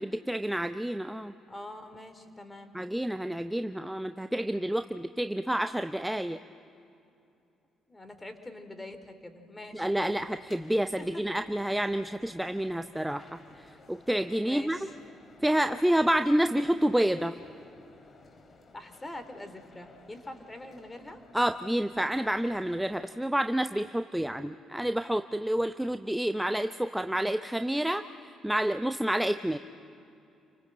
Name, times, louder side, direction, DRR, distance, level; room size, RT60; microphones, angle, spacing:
voice 1, 0.0-1.3 2.7-6.4 9.7-13.3 13.6-14.8 15.4-17.4 21.3-28.0 28.4-29.6, right 1 dB, 5° right, 10 dB, 0.8 m, -29 dB
voice 2, 1.5-2.8 7.9-10.2 10.6-10.7 11.0-11.2 14.4-14.9 18.7-21.2, left 1 dB, 15° left, 8 dB, 3.5 m, -44 dB
sound 1, 9.8-23.1, left 3 dB, 40° left, 2.9 m, -56 dB
29.0 x 25.5 x 7.8 m, 2.7 s
figure-of-eight pair, 45°, 0 cm